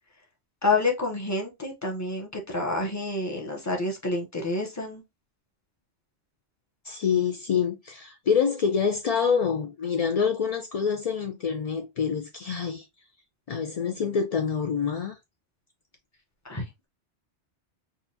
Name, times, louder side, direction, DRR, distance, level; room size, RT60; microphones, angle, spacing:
voice 1, 0.6-5.0 16.4-16.6, left 3 dB, 15° left, 0.9 m, -28 dB
voice 2, 6.8-12.9 13.5-15.2, left 6 dB, 60° left, 0.4 m, -26 dB
3.9 x 2.5 x 2.7 m
omnidirectional pair, 1.1 m